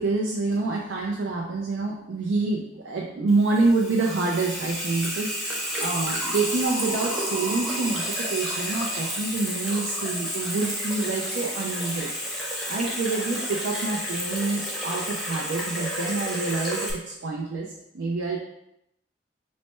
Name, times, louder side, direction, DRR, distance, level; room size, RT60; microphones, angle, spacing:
voice 1, 0.0-12.1 12.7-18.4, right 3 dB, 85° right, -1 dB, 0.5 m, -27 dB
Water tap faucet / Sink (filling or washing), 3.3-16.9, equal, ahead, 0.6 m, -31 dB
3.2 x 2.1 x 4.2 m, 0.81 s
head